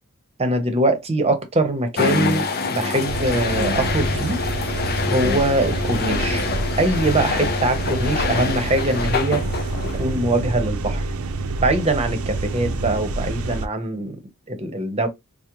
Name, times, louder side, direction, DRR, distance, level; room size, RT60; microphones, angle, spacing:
voice 1, 0.4-4.4 5.1-6.4 6.8-9.4 10.0-11.0 11.6-14.2 14.5-15.1, right 2 dB, 30° right, 0.8 m, -22 dB
sound 1, 2.0-10.2, left 4 dB, 45° left, 0.5 m, -25 dB
sound 2, 3.1-13.7, right 3 dB, 70° right, 0.5 m, -27 dB
4.8 x 2.1 x 3.0 m
head